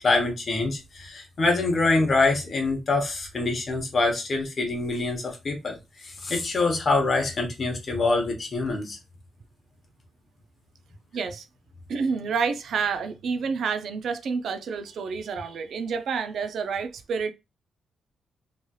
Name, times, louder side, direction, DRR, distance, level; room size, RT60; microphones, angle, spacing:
voice 1, 0.0-9.0, left 3 dB, 35° left, 0.8 m, -25 dB
voice 2, 11.1-11.4 11.9-17.3, right 5 dB, 60° right, 0.3 m, -29 dB
3.0 x 2.8 x 2.2 m
wide cardioid pair, 160°, 0 cm